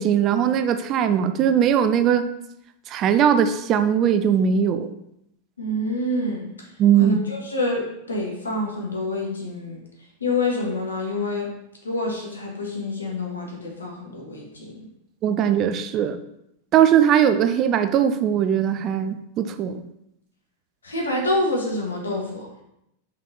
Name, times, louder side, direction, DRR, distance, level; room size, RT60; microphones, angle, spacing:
voice 1, 0.0-2.3 2.9-4.9 6.8-7.2 15.2-16.2 16.7-19.8, right 9 dB, 35° right, 10 dB, 0.5 m, -20 dB
voice 2, 5.6-6.5 7.0-9.8 10.2-11.5 11.8-14.7 20.8-22.5, left 1 dB, 85° left, -1 dB, 1.8 m, -27 dB
5.5 x 5.4 x 4.0 m, 0.80 s
figure-of-eight pair, 95°, 0 cm